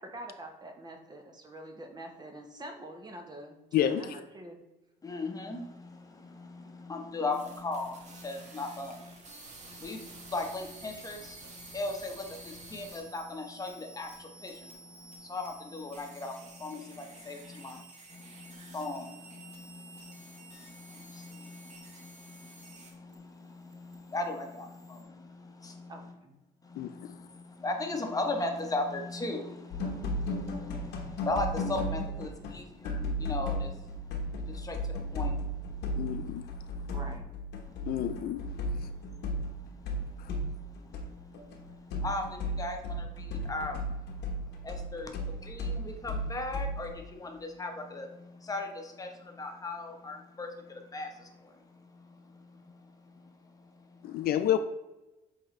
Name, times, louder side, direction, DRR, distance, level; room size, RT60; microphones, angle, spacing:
voice 1, 0.0-4.6 25.9-26.3 36.9-37.3, right 1 dB, 25° right, 1.0 m, -45 dB
voice 2, 3.7-4.2 26.8-26.9 36.0-36.5 37.9-38.4 40.2-40.3 54.0-54.6, left 11 dB, 65° left, 0.4 m, -29 dB
voice 3, 5.0-9.2 9.6-17.8 18.1-25.9 26.6-36.9 37.6-38.0 38.6-54.2, left 2 dB, 20° left, 1.0 m, -39 dB
sound 1, 7.3-23.1 23.4-25.0, right 2 dB, 45° right, 1.5 m, -51 dB
sound 2, 29.7-32.6 32.8-41.1 41.3-47.0, equal, 85° left, 1.2 m, -35 dB
7.7 x 3.9 x 3.2 m
cardioid pair, 110°, 17 cm